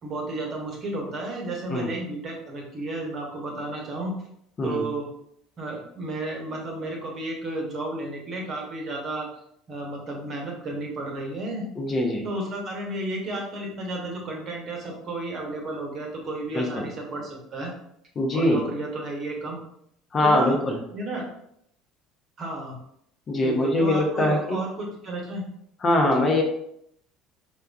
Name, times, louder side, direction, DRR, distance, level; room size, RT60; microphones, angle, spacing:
voice 1, 0.0-4.1 4.6-5.1 5.6-9.3 9.7-11.7 12.2-17.7 18.3-19.6 20.2-20.6 20.9-21.3 22.4-22.7 23.4-25.5 26.1-26.3, right 2 dB, 45° right, 0 dB, 1.0 m, -32 dB
voice 2, 11.8-12.2 16.5-16.9 18.2-18.6 20.1-20.8 23.3-24.6 25.8-26.4, left 1 dB, 35° left, 2 dB, 0.7 m, -22 dB
4.6 x 2.3 x 2.4 m, 0.72 s
hypercardioid pair, 65°, 0 cm